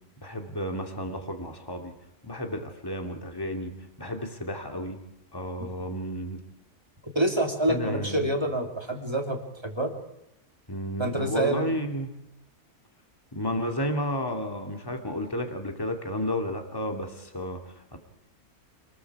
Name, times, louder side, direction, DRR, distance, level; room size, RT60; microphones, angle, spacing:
voice 1, 0.2-1.9 2.2-3.7 4.0-5.0 5.3-6.4 7.7-8.3 10.7-12.1 13.3-18.0, equal, 15° left, 4 dB, 2.5 m, -32 dB
voice 2, 7.1-9.9 11.0-11.9, right 1 dB, 20° right, 3 dB, 3.0 m, -27 dB
27.5 x 21.0 x 4.9 m, 0.82 s
omnidirectional pair, 1.5 m